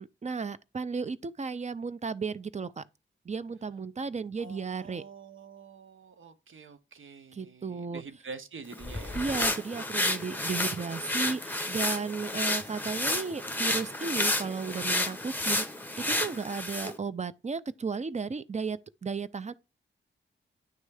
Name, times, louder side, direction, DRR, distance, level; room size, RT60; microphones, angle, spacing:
voice 1, 0.0-2.8 3.3-5.0 7.3-8.0 9.1-15.6 16.1-19.5, right 5 dB, 35° right, 0.5 m, -34 dB
voice 2, 4.4-9.3, right 4 dB, 85° right, 0.9 m, -46 dB
sound 1, 8.7-17.0, left 1 dB, 10° left, 0.9 m, -31 dB
9.3 x 3.3 x 4.8 m
wide cardioid pair, 70°, 20 cm